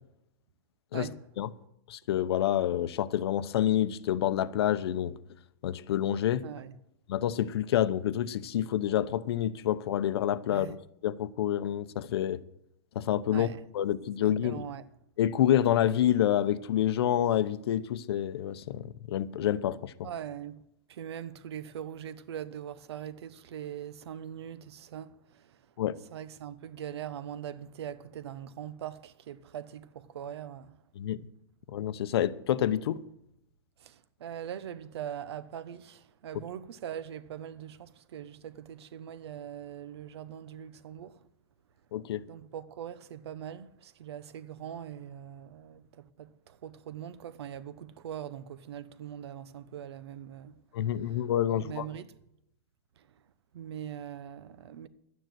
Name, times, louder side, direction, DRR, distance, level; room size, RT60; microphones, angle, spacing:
voice 1, 1.9-5.2 5.6-6.5 7.1-10.8 11.0-12.4 12.9-13.5 13.7-14.6 15.2-20.1 25.8-26.0 31.0-31.3 31.7-33.0 41.9-42.2 50.7-51.9, left 11 dB, 75° left, 0.8 m, -28 dB
voice 2, 6.4-6.7 10.5-10.8 13.3-13.6 14.2-14.8 20.0-20.6 20.9-25.6 26.1-30.8 33.8-41.2 42.3-50.6 51.0-51.2 51.5-52.2 53.0-53.1 53.5-54.9, right 9 dB, 85° right, 1.1 m, -42 dB
12.5 x 9.4 x 7.7 m
supercardioid pair, 170°, 13 cm